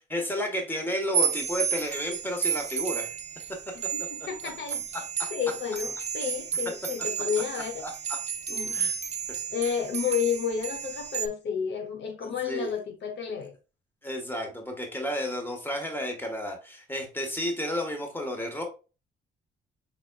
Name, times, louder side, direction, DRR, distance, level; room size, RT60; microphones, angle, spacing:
voice 1, 0.1-3.1 4.9-5.3 7.5-7.9 8.7-8.9 12.2-12.8 14.0-18.6, equal, 10° left, 1.5 m, -32 dB
sound 1, 1.1-11.3, right 7 dB, 35° right, 0.6 m, -32 dB
voice 2, 3.7-4.8 5.3-7.8 8.5-8.8 9.5-13.5, left 7 dB, 65° left, 1.0 m, -31 dB
4.3 x 4.1 x 2.4 m
cardioid pair, 90°, 20 cm